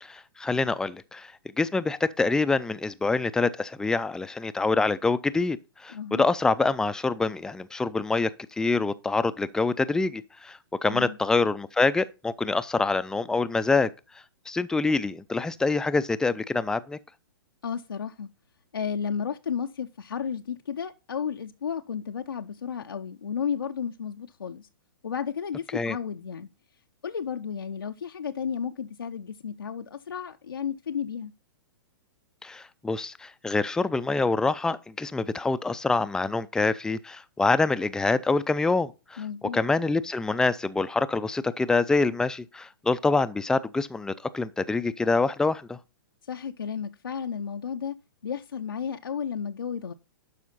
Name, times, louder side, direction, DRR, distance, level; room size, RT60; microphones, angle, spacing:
voice 1, 0.0-5.6 5.8-13.9 14.5-17.0 25.7-26.0 32.4-39.2 39.5-45.8, left 3 dB, 5° left, 0.5 m, -26 dB
voice 2, 5.9-6.3 10.9-11.2 17.6-18.3 18.7-24.7 25.0-26.5 27.0-31.3 39.2-39.6 46.2-47.9 48.2-49.9, left 7 dB, 75° left, 0.6 m, -33 dB
12.0 x 5.0 x 4.0 m
figure-of-eight pair, 115°, 12 cm